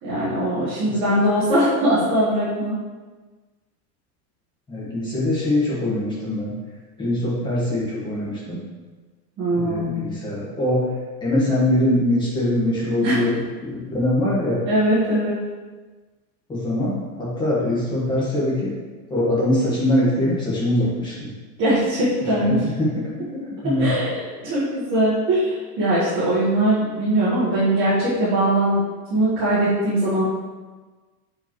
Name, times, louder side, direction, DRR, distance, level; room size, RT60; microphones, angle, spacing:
voice 1, 0.0-2.8 9.4-10.0 13.0-13.2 14.7-15.4 21.6-22.6 23.6-28.8 29.1-30.2, right 1 dB, 25° right, -10 dB, 1.5 m, -21 dB
voice 2, 4.7-6.5 7.0-8.6 9.5-10.8 11.2-14.6 16.5-18.7 19.1-21.3 22.3-22.9 23.3-23.9, left 1 dB, 10° left, -7 dB, 1.6 m, -22 dB
6.4 x 5.0 x 3.1 m, 1.3 s
supercardioid pair, 160°, 48 cm